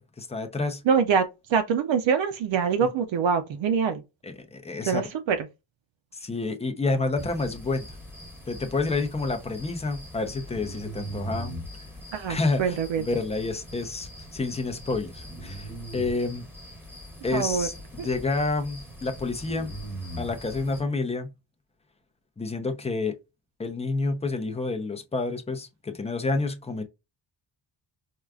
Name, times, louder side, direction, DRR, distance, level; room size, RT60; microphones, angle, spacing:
voice 1, 0.0-0.8 2.8-2.9 4.2-5.0 6.1-7.9 8.5-11.5 12.3-16.4 17.2-19.7 20.2-21.3 22.4-23.1 23.6-26.8, left 3 dB, 15° left, 0.5 m, -29 dB
voice 2, 0.9-4.0 4.9-5.4 12.1-13.0 17.3-17.7 18.0-18.1, right 6 dB, 75° right, 0.6 m, -24 dB
sound 1, 7.2-20.8, right 1 dB, 5° right, 1.3 m, -41 dB
4.7 x 2.3 x 2.3 m
wide cardioid pair, 140°, 46 cm